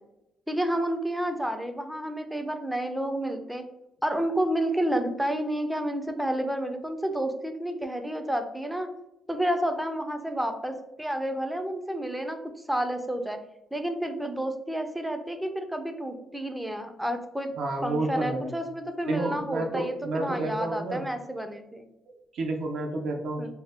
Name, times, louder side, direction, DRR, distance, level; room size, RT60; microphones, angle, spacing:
voice 1, 0.5-3.6 4.0-8.9 9.3-12.4 12.7-13.4 13.7-17.5 17.8-21.8 23.4-23.5, right 1 dB, 5° right, 6 dB, 0.4 m, -30 dB
voice 2, 17.6-18.6 19.1-21.0 22.1-23.5, right 2 dB, 65° right, 2 dB, 0.6 m, -30 dB
2.7 x 2.2 x 3.3 m, 0.86 s
cardioid pair, 115°, 0 cm